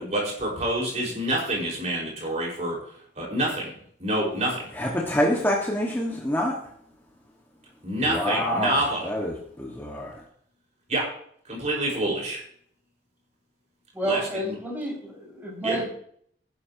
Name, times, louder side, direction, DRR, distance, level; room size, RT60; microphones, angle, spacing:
voice 1, 0.0-2.8 3.2-3.7 4.0-4.6 7.8-9.1 10.9-11.1 11.5-12.4 14.0-14.3 15.6-15.8, right 1 dB, 40° right, -3 dB, 5.4 m, -27 dB
voice 2, 4.8-6.6 8.1-10.2, equal, 10° left, -3 dB, 1.9 m, -26 dB
voice 3, 13.9-15.9, right 1 dB, 10° right, -4 dB, 6.3 m, -30 dB
17.0 x 11.5 x 3.1 m, 0.62 s
head